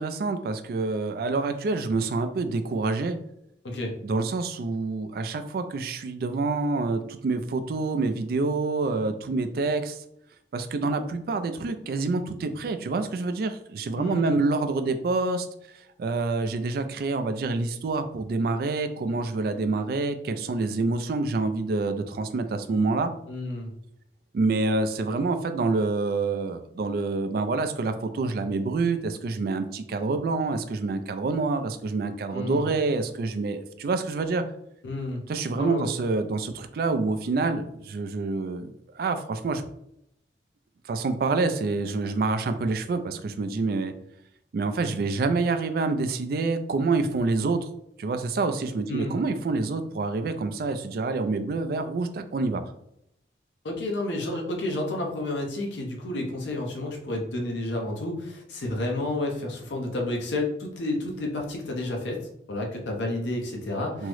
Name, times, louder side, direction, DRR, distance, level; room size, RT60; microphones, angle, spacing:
voice 1, 0.0-3.2 4.0-10.0 10.5-15.5 15.7-23.1 24.3-34.4 35.3-39.6 40.9-43.9 44.5-47.6 48.0-52.6 64.0-64.1, right 3 dB, 55° right, 9 dB, 0.3 m, -27 dB
voice 2, 14.0-14.4 23.3-23.7 32.3-32.7 34.8-35.2 35.6-35.9 48.9-49.2 53.6-64.1, left 2 dB, 85° left, 1 dB, 0.6 m, -30 dB
3.6 x 2.0 x 3.1 m, 0.77 s
head